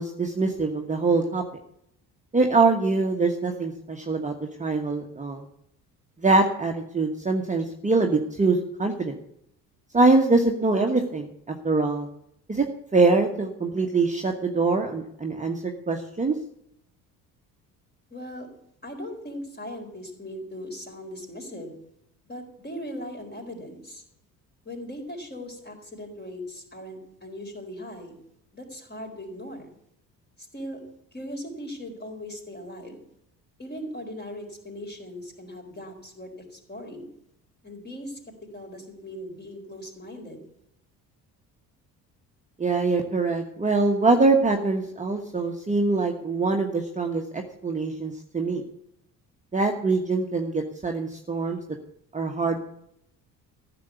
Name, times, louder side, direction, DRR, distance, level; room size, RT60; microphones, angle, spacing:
voice 1, 0.0-1.4 2.3-4.3 4.6-5.4 6.2-9.1 9.9-12.1 12.5-12.6 12.9-16.3 42.6-48.6 49.5-51.6 52.1-52.6, right 3 dB, 15° right, 2 dB, 1.3 m, -23 dB
voice 2, 18.1-18.5 18.8-21.8 22.2-24.0 24.6-28.1 28.5-29.7 30.5-30.8 31.1-33.0 33.6-37.1 37.6-38.2 38.5-40.4, equal, 20° left, 3 dB, 4.2 m, -39 dB
14.5 x 7.0 x 8.2 m, 0.75 s
figure-of-eight pair, 50°, 49 cm